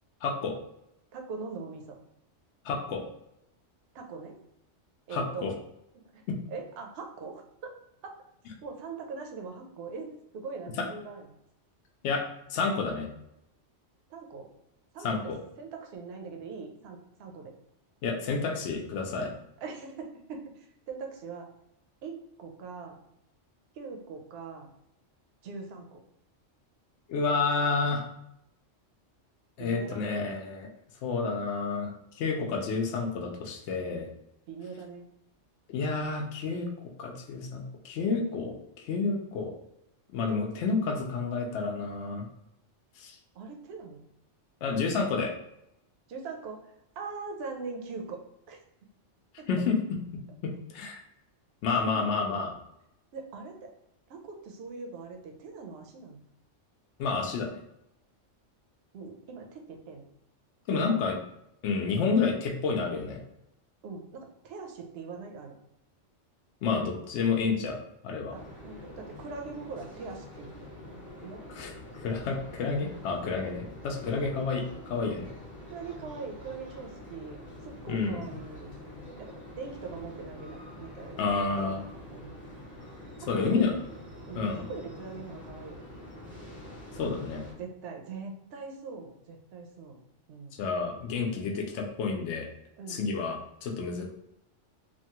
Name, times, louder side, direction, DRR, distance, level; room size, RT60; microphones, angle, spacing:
voice 1, 0.2-0.6 2.6-3.0 5.1-5.5 6.3-6.4 10.8-10.9 12.0-12.2 12.5-13.1 15.0-15.4 18.0-19.3 27.1-28.1 29.6-30.7 31.0-34.1 35.7-36.7 37.0-38.5 38.8-39.5 40.1-42.2 43.0-43.2 44.6-45.3 49.5-49.8 50.4-51.0 51.6-52.6 57.0-57.6 60.7-61.1 61.6-63.2 66.6-67.8 68.0-68.3 71.5-71.7 72.0-74.6 74.9-75.3 77.9-78.2 81.2-81.8 83.3-83.7 84.3-84.7 86.9-87.4 90.6-92.5 92.9-94.1, left 4 dB, 70° left, 2 dB, 0.9 m, -29 dB
voice 2, 1.1-2.0 3.9-4.4 5.1-5.5 5.9-6.2 6.5-7.7 8.0-8.1 8.6-11.3 14.1-14.5 14.9-17.5 19.6-21.5 22.0-23.0 23.7-24.7 25.4-26.0 29.6-30.2 34.5-35.1 43.3-44.0 46.1-48.2 48.5-48.6 49.4-49.5 51.9-52.0 53.1-53.7 54.1-56.2 58.9-60.0 60.7-61.0 63.8-65.5 68.3-71.5 74.0-74.4 75.7-78.7 79.2-82.4 83.2-83.7 84.3-85.7 87.6-90.0 90.3-90.6 92.8-93.0, right 4 dB, 65° right, 3 dB, 0.7 m, -42 dB
Ambience - Train Station - Inside, 68.3-87.5, left 1 dB, 20° left, 1.1 m, -46 dB
2.9 x 2.2 x 2.8 m, 0.82 s
omnidirectional pair, 1.3 m